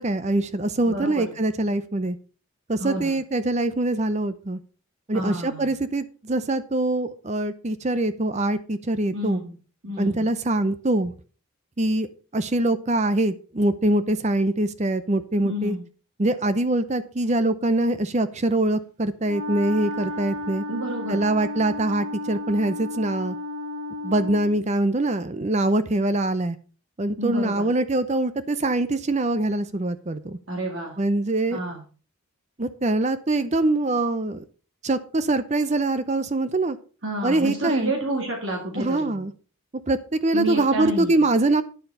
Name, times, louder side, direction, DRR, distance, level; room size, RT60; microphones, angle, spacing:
voice 1, 0.0-2.2 2.7-4.6 5.1-9.4 10.0-11.1 11.8-12.1 12.3-15.8 16.2-20.6 21.1-23.4 24.0-26.6 27.0-30.4 31.0-31.6 32.6-34.4 34.8-36.8 37.2-37.9 38.8-39.3 39.9-41.6, right 2 dB, 30° right, 13 dB, 0.6 m, -23 dB
voice 2, 0.8-1.3 2.8-3.2 5.1-5.7 9.1-9.6 9.8-10.3 15.4-15.8 20.7-21.3 27.2-27.7 30.5-30.9 31.5-31.8 37.0-39.2 40.3-41.3, right 1 dB, 60° right, 0 dB, 1.9 m, -29 dB
Wind instrument woodwind instrument, 19.2-24.6, left 2 dB, 80° right, 1.2 m, -33 dB
10.0 x 7.0 x 5.4 m, 0.38 s
head